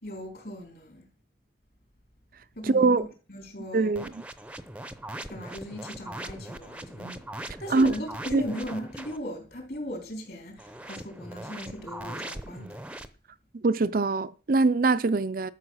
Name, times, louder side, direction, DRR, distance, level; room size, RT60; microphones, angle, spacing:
voice 1, 0.0-1.1 2.6-3.9 5.3-12.8, equal, 55° left, 4.0 m, -38 dB
voice 2, 2.6-3.0 3.7-4.1 7.7-7.9 8.3-8.4 13.6-15.5, right 3 dB, 50° right, 0.5 m, -23 dB
sound 1, 3.9-9.2 10.6-13.1, right 1 dB, 5° right, 0.7 m, -40 dB
12.5 x 6.5 x 6.3 m
head